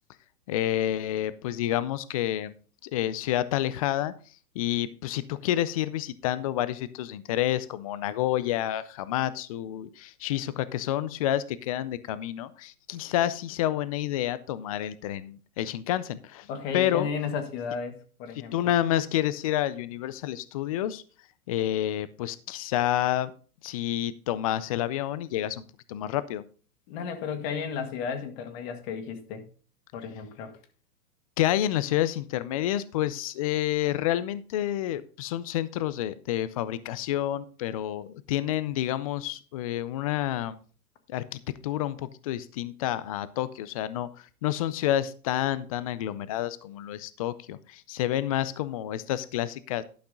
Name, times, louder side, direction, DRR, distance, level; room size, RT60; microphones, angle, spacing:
voice 1, 0.5-2.5 2.8-4.1 4.6-16.5 16.7-17.1 18.5-21.0 21.5-23.3 23.6-25.6 25.9-26.4 31.4-40.6 41.1-49.8, left 12 dB, 25° left, 0.4 m, -29 dB
voice 2, 16.5-18.7 26.9-29.4 29.9-30.5, left 6 dB, 40° left, 1.8 m, -34 dB
12.0 x 5.9 x 3.8 m
hypercardioid pair, 130°, 45 cm